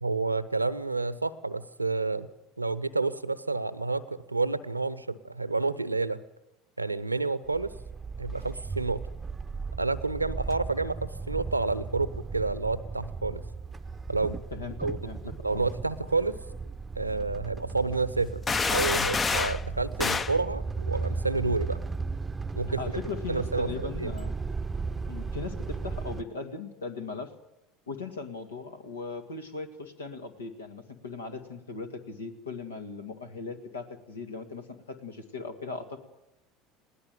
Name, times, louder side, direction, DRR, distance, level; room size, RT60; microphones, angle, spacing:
voice 1, 0.0-2.3 2.6-6.2 6.8-7.7 8.2-9.0 9.8-13.4 14.1-14.4 14.8-15.0 15.4-16.3 17.0-18.3 18.7-21.8 22.6-22.8 23.3-23.7 24.0-24.1, right 3 dB, 90° right, 17 dB, 0.8 m, -29 dB
sound 1, 7.4-26.2, right 4 dB, 15° right, 0.7 m, -36 dB
voice 2, 14.5-15.2 15.5-15.6 22.8-24.3 25.1-27.3 27.9-36.0, left 4 dB, 75° left, 7 dB, 2.0 m, -38 dB
sound 2, 18.5-19.6 20.0-20.4, left 4 dB, 25° left, 0.7 m, -27 dB
20.5 x 18.0 x 7.7 m, 0.91 s
figure-of-eight pair, 70°, 0 cm